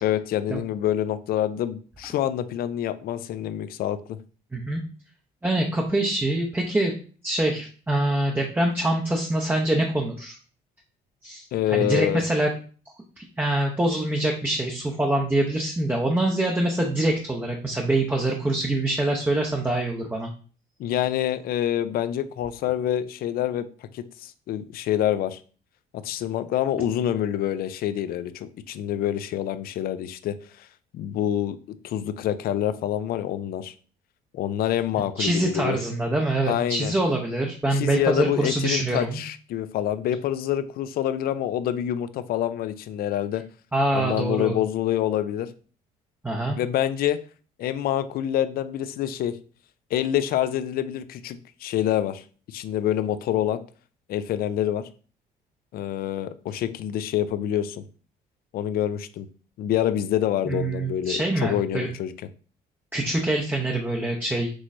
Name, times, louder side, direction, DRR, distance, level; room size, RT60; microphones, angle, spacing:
voice 1, 0.0-4.2 11.5-12.2 20.8-23.7 23.9-25.4 25.9-30.7 30.9-31.6 31.8-33.7 34.3-35.8 36.5-36.9 37.7-43.4 43.9-45.5 46.6-47.2 47.6-49.4 49.9-53.6 54.1-54.8 55.7-57.8 58.5-59.3 59.6-62.1, left 11 dB, 65° left, 12 dB, 0.4 m, -26 dB
voice 2, 5.4-6.9 7.2-10.4 11.2-12.5 13.2-20.3 35.2-39.2 43.7-44.6 46.2-46.6 60.5-61.9 62.9-64.5, right 1 dB, 10° right, 0 dB, 0.6 m, -25 dB
6.2 x 3.0 x 2.6 m, 0.39 s
cardioid pair, 110°, 17 cm